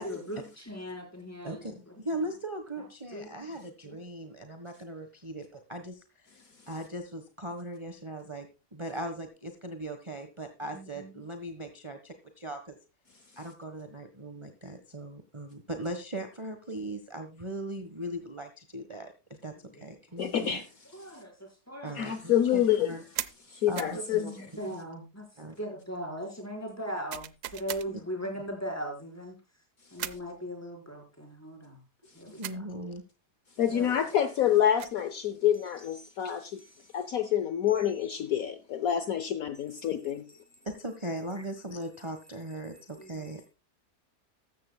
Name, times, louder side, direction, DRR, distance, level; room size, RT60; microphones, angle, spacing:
voice 1, 0.0-2.2 2.8-3.5 3.8-4.0 10.6-11.2 19.7-19.9 20.4-20.5 20.9-22.1 23.8-29.4 29.9-31.8 32.1-32.6 33.7-34.1 41.4-41.5 42.7-43.3, equal, 10° left, 4.6 m, -40 dB
voice 2, 1.4-6.3 6.7-12.8 13.3-20.6 21.8-23.0 23.7-24.3 24.7-24.8 25.4-25.5 32.3-33.0 40.6-43.4, right 1 dB, 20° right, 1.3 m, -39 dB
voice 3, 20.2-20.6 22.0-23.0 23.5-24.2 33.6-36.6 36.9-40.3, left 10 dB, 65° left, 1.2 m, -27 dB
sound 1, 23.1-23.4 23.8-24.0 27.1-27.9 30.0-30.3 32.4-32.6 34.5-35.0, right 12 dB, 80° right, 1.3 m, -38 dB
14.0 x 14.0 x 2.3 m
omnidirectional pair, 1.7 m